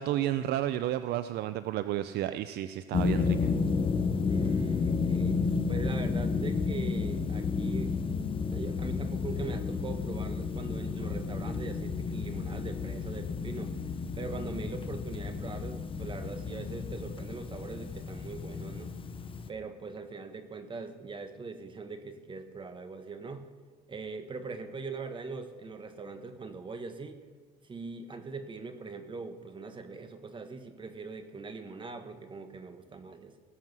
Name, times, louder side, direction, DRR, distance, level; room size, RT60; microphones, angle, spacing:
voice 1, 0.0-3.5, right 12 dB, 75° right, 12 dB, 0.5 m, -31 dB
sound 1, 2.9-19.5, left 5 dB, 30° left, 0.9 m, -32 dB
voice 2, 4.2-8.0 8.5-13.8 14.1-18.9 19.5-23.5 23.9-27.2 27.6-33.3, right 4 dB, 30° right, 9 dB, 1.4 m, -41 dB
19.0 x 7.6 x 6.2 m, 1.5 s
cardioid pair, 110°, 17 cm